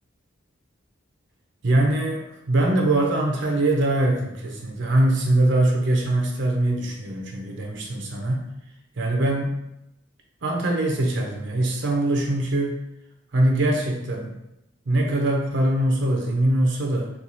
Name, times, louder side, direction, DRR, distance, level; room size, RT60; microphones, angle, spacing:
voice 1, 1.6-8.5 9.0-9.5 10.4-12.8 13.3-14.3 14.9-17.1, right 1 dB, 65° right, 0 dB, 0.6 m, -22 dB
4.3 x 2.3 x 2.6 m, 0.83 s
head